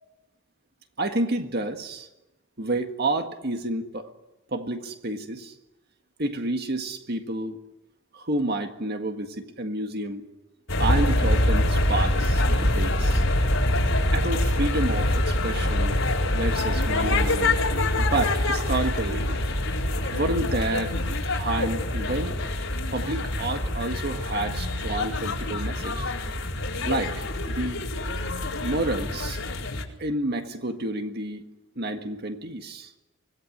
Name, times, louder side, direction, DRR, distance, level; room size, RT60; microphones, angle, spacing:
voice 1, 1.0-2.1 2.6-4.1 4.5-5.5 6.2-7.6 8.1-10.3 10.8-13.2 14.1-16.0 16.3-17.6 18.0-19.3 20.1-21.0 21.3-22.4 22.9-26.1 26.9-27.8 28.6-29.4 30.0-31.4 31.8-32.9, right 2 dB, 50° right, 6 dB, 1.8 m, -29 dB
sound 1, 10.7-29.8, left 1 dB, 75° left, 4.5 m, -25 dB
25.0 x 18.5 x 9.7 m, 0.99 s
head